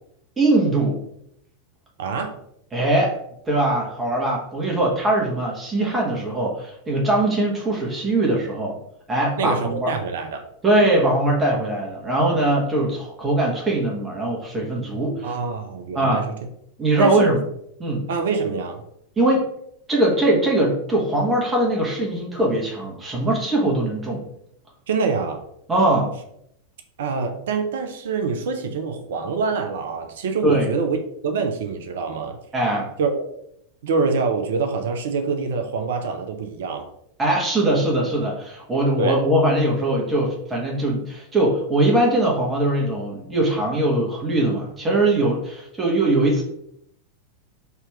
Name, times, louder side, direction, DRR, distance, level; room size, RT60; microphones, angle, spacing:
voice 1, 0.4-1.0 2.7-3.2 3.5-8.7 9.1-9.9 10.6-15.2 15.9-16.2 16.8-17.4 17.8-18.1 19.2-19.5 19.9-24.2 25.7-26.1 30.4-30.7 32.5-32.9 37.2-46.4, right 1 dB, 15° right, -2 dB, 1.3 m, -21 dB
voice 2, 2.0-2.4 9.4-10.4 15.2-16.3 17.0-17.4 18.1-18.8 24.9-25.4 27.0-31.0 31.2-32.4 33.0-33.2 33.8-36.9 39.0-39.2, right 4 dB, 60° right, 6 dB, 0.5 m, -25 dB
3.4 x 2.9 x 4.5 m, 0.73 s
figure-of-eight pair, 90°, 0 cm